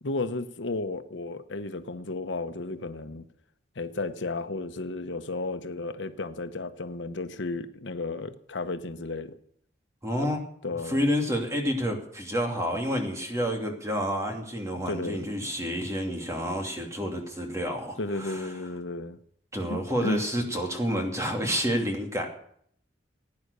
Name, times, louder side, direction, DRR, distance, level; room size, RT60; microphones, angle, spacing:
voice 1, 0.0-3.3 3.8-9.4 10.2-10.3 10.6-11.0 14.9-15.3 18.0-19.2 19.7-20.2, left 3 dB, 85° left, 9 dB, 1.0 m, -33 dB
voice 2, 10.0-10.4 10.8-18.5 19.5-22.3, equal, 15° right, 2 dB, 2.7 m, -29 dB
16.5 x 9.7 x 6.8 m, 0.66 s
head